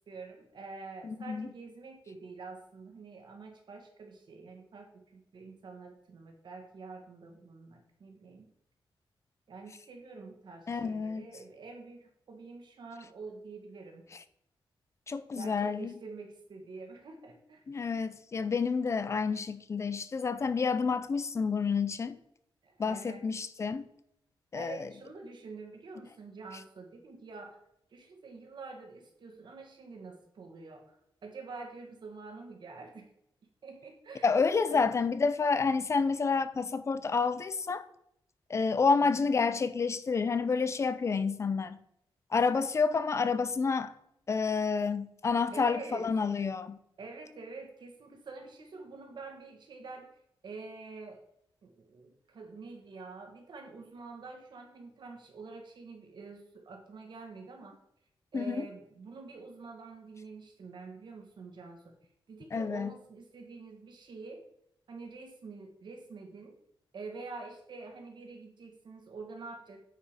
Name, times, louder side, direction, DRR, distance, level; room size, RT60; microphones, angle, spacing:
voice 1, 0.1-8.5 9.5-14.0 15.4-17.6 22.6-23.3 24.5-27.6 27.9-31.0 31.2-33.1 33.6-34.4 34.7-34.9 39.0-39.3 45.5-46.1 47.0-50.1 50.4-51.2 51.6-57.8 58.3-61.9 62.3-64.4 64.9-66.6 66.9-69.8, right 4 dB, 60° right, 1.9 m, -47 dB
voice 2, 1.0-1.5 10.7-11.2 15.1-15.9 17.7-22.2 22.8-23.9 24.5-24.9 34.2-37.9 38.5-41.8 42.3-43.9 44.3-46.8 58.3-58.7 62.5-62.9, left 5 dB, 30° left, 0.5 m, -29 dB
9.5 x 4.9 x 4.9 m
wide cardioid pair, 180°, 9 cm